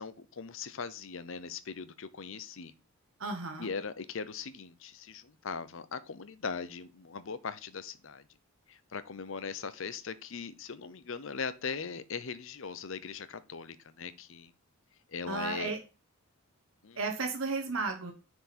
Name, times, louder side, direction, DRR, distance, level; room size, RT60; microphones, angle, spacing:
voice 1, 0.0-2.7 3.6-8.2 8.7-14.5 15.1-15.7 16.8-17.0, left 5 dB, 60° left, 0.6 m, -40 dB
voice 2, 3.2-3.7 15.3-15.8 17.0-18.1, right 3 dB, 60° right, 1.1 m, -33 dB
6.5 x 4.7 x 4.2 m
head